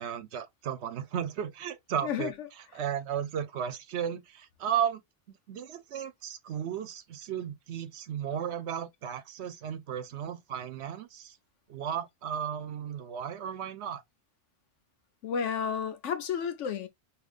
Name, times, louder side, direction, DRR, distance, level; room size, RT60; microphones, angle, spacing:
voice 1, 0.0-2.3 2.7-5.0 5.3-11.4 11.7-14.0, right 9 dB, 70° right, 0.9 m, -34 dB
voice 2, 2.0-2.5 15.2-16.9, left 7 dB, 90° left, 1.1 m, -32 dB
5.0 x 2.9 x 2.4 m
omnidirectional pair, 1.2 m